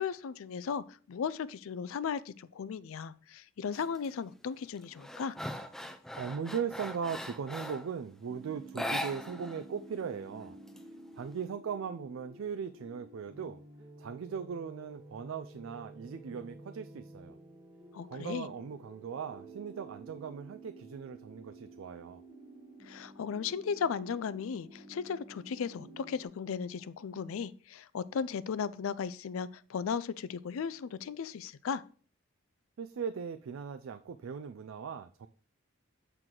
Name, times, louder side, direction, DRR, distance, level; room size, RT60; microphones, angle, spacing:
voice 1, 0.0-5.4 17.9-18.5 22.8-31.8, left 6 dB, 70° left, 17 dB, 0.4 m, -36 dB
sound 1, 3.7-4.1 4.5-7.9 8.7-9.6 9.9-10.0 10.4-11.3, left 1 dB, ahead, 0.4 m, -40 dB
voice 2, 6.2-10.6 11.2-13.6 14.0-17.4 18.0-22.2 32.8-35.3, right 6 dB, 65° right, 10 dB, 0.4 m, -39 dB
sound 2, 8.3-26.3, right 2 dB, 15° right, 0.9 m, -52 dB
7.8 x 4.5 x 3.8 m, 0.43 s
head